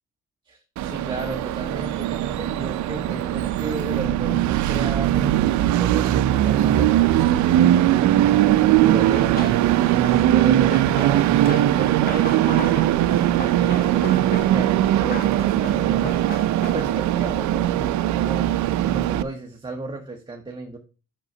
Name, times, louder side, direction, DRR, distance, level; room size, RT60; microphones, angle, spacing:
voice 1, 0.4-7.2 7.5-7.9 8.4-13.0 13.5-16.2 16.7-18.5 18.8-20.8, right 3 dB, 15° right, 3 dB, 0.8 m, -34 dB
Train, 0.8-19.2, right 13 dB, 65° right, 0.5 m, -20 dB
Wind chime, 1.7-17.8, right 1 dB, 5° left, 1.9 m, -47 dB
Run, 9.0-17.1, left 3 dB, 30° left, 1.3 m, -37 dB
5.9 x 5.4 x 5.3 m, 0.35 s
cardioid pair, 145°, 31 cm